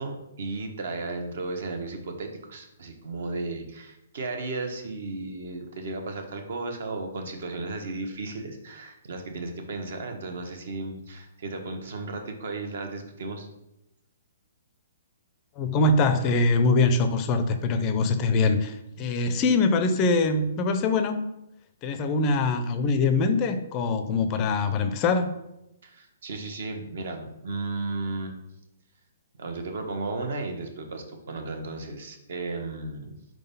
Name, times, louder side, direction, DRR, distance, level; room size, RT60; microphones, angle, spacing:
voice 1, 0.0-13.5 25.8-28.4 29.4-33.1, right 3 dB, 60° right, 5 dB, 1.1 m, -34 dB
voice 2, 15.6-21.3 21.8-25.3, left 3 dB, 25° left, 8 dB, 0.4 m, -23 dB
4.6 x 3.9 x 5.3 m, 0.87 s
hypercardioid pair, 160°, 0 cm